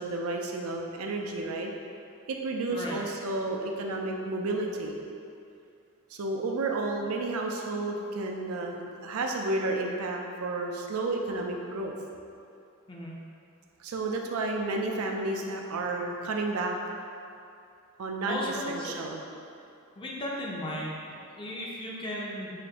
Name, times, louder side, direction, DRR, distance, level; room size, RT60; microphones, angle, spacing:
voice 1, 0.0-1.7 2.3-5.0 6.1-11.9 13.8-16.8 18.0-19.2, right 2 dB, 85° right, 1 dB, 0.4 m, -31 dB
voice 2, 18.3-18.9 20.0-22.5, left 1 dB, 25° left, -4 dB, 0.5 m, -36 dB
4.9 x 2.6 x 2.8 m, 2.6 s
head